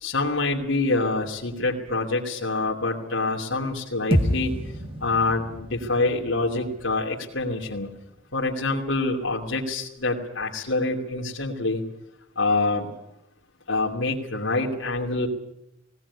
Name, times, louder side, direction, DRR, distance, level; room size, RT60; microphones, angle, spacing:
voice 1, 0.0-4.5 5.0-7.9 8.3-11.8 12.4-12.9 13.7-15.3, left 3 dB, 85° left, -3 dB, 2.9 m, -26 dB
sound 1, 4.1-8.5, equal, 30° right, 1.8 m, -30 dB
20.0 x 18.5 x 9.8 m, 0.84 s
head